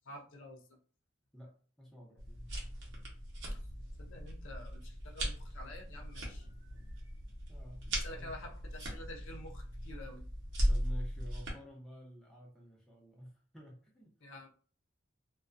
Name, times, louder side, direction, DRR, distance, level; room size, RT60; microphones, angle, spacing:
voice 1, 0.1-0.6 3.5-3.6 4.0-6.5 7.9-10.2 14.2-14.5, left 1 dB, 75° left, 1 dB, 0.5 m, -49 dB
voice 2, 1.3-2.5 7.5-8.4 10.7-14.1, equal, 5° left, -3 dB, 0.6 m, -52 dB
sound 1, 2.2-11.5, equal, 65° right, 0.8 m, -38 dB
2.4 x 2.2 x 2.4 m, 0.41 s
head